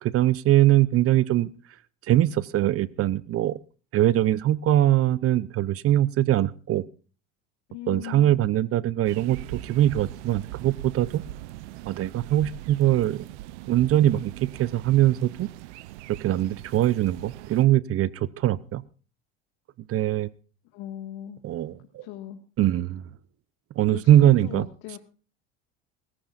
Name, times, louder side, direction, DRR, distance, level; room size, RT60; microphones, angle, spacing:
voice 1, 0.0-1.5 2.1-3.6 3.9-6.8 7.9-11.2 11.9-13.3 13.7-14.3 14.6-15.5 16.1-18.8 19.9-20.3 21.4-22.1 22.6-23.0 23.8-24.7, right 13 dB, 45° right, 19 dB, 0.7 m, -22 dB
voice 2, 7.7-8.4 20.7-21.4 22.0-22.4 23.9-25.0, left 12 dB, 70° left, 5 dB, 1.9 m, -38 dB
sound 1, 9.0-17.6, right 16 dB, 90° right, 0.6 m, -41 dB
22.0 x 15.0 x 2.5 m, 0.36 s
supercardioid pair, 105°, 34 cm